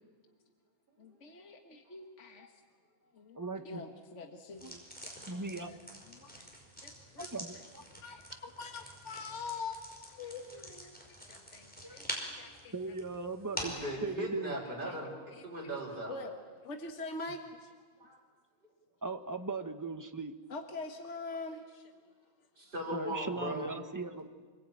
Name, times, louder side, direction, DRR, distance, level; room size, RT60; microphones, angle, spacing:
voice 1, 1.0-2.5 3.1-4.7 5.0-5.1 5.6-5.8 6.1-6.5 6.8-7.4 7.9-12.7 13.7-13.9 14.9-15.0 15.3-15.8 16.1-16.3 16.6-17.7 20.5-22.1, left 3 dB, 50° left, 4 dB, 1.9 m, -44 dB
voice 2, 3.3-3.8 4.6-4.8 5.3-5.8 7.2-7.8 11.8-12.0 12.7-13.7 14.0-14.6 19.0-20.3 22.9-24.3, right 3 dB, 15° right, 7 dB, 1.1 m, -38 dB
sound 1, 4.5-13.9, equal, 5° left, 5.1 m, -46 dB
voice 3, 13.6-16.2 18.0-18.2 22.6-23.6, right 1 dB, 35° right, -2 dB, 5.5 m, -39 dB
26.5 x 20.5 x 9.0 m, 1.5 s
omnidirectional pair, 1.6 m